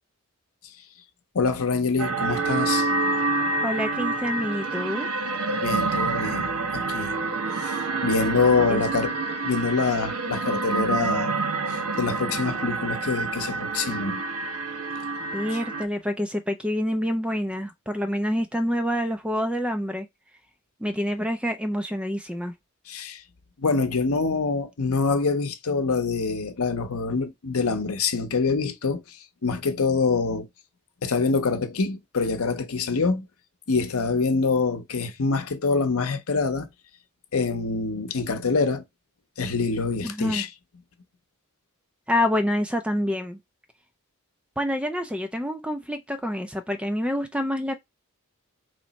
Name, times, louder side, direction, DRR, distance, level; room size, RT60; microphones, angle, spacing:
voice 1, 1.3-2.9 5.6-7.2 7.6-7.8 8.0-9.1 9.4-11.3 11.7-14.2 22.9-23.2 23.6-29.2 29.4-30.5 31.0-33.3 33.7-36.7 37.3-38.8 39.4-40.5, left 4 dB, 75° left, 0.7 m, -25 dB
sound 1, 2.0-15.8, right 3 dB, 70° right, 0.7 m, -27 dB
voice 2, 3.6-5.1 8.7-8.8 15.3-20.1 20.8-22.5 40.0-40.4 42.1-43.4 44.6-47.8, left 1 dB, 5° right, 0.4 m, -27 dB
3.1 x 3.0 x 4.1 m
head